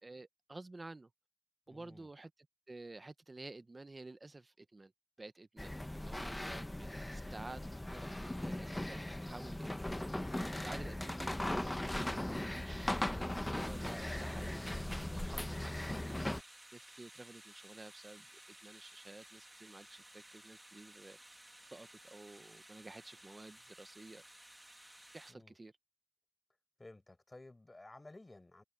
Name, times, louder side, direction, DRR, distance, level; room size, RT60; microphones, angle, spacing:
voice 1, 0.0-1.1 1.7-2.3 2.7-4.9 5.2-9.9 10.5-16.1 16.7-21.4 21.7-24.2 25.1-25.7, right 2 dB, 70° right, 0.8 m, -52 dB
voice 2, 1.7-2.1 25.3-25.6 26.8-28.6, left 2 dB, 55° left, 6.2 m, -55 dB
sound 1, 5.6-16.4, left 1 dB, 30° left, 0.8 m, -39 dB
sound 2, 13.6-25.3, right 1 dB, 25° right, 1.3 m, -57 dB
wide cardioid pair, 55°, 0 cm